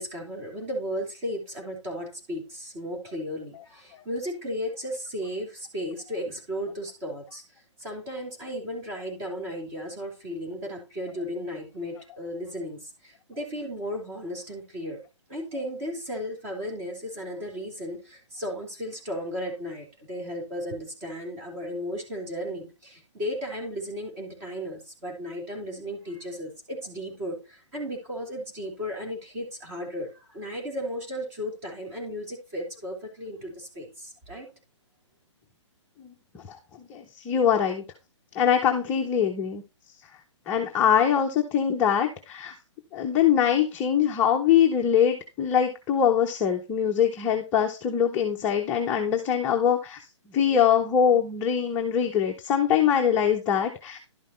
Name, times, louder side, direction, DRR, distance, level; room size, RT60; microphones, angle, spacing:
voice 1, 0.0-7.4 7.8-15.0 15.3-34.5, equal, 25° right, -1 dB, 3.1 m, -35 dB
voice 2, 36.4-37.8 38.3-39.6 40.5-42.5 42.9-54.0, left 8 dB, 10° left, 2 dB, 0.6 m, -23 dB
11.5 x 5.6 x 4.3 m, 0.29 s
hypercardioid pair, 165°, 16 cm